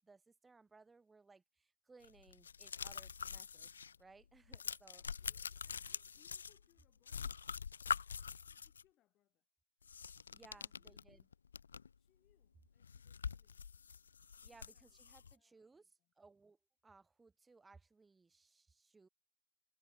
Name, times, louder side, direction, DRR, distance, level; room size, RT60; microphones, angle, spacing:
voice 1, 0.0-3.7 4.0-5.0 10.0-11.3 14.4-19.1, right 4 dB, 5° right, 5.3 m, -64 dB
sound 1, 2.0-4.0 4.2-6.8 7.1-8.8 9.8-12.0 12.3-12.4 12.8-15.3, left 6 dB, 65° left, 0.6 m, -45 dB
voice 2, 4.9-7.4 8.3-9.5 10.5-11.0 12.0-13.6 14.4-15.0 15.3-16.1, left 14 dB, 20° left, 5.7 m, -77 dB
hypercardioid pair, 140°, 0 cm